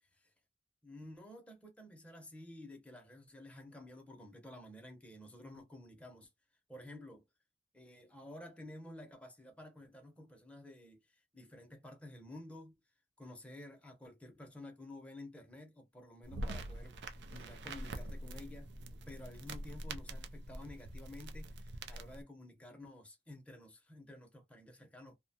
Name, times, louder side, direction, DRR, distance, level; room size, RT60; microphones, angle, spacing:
voice 1, 0.0-0.3 0.8-6.3 6.7-7.2 7.7-12.7 13.2-18.7 19.1-25.2, left 1 dB, 5° left, 0.7 m, -52 dB
sound 1, 16.2-22.2, right 1 dB, 75° right, 0.4 m, -45 dB
2.7 x 2.1 x 2.7 m
head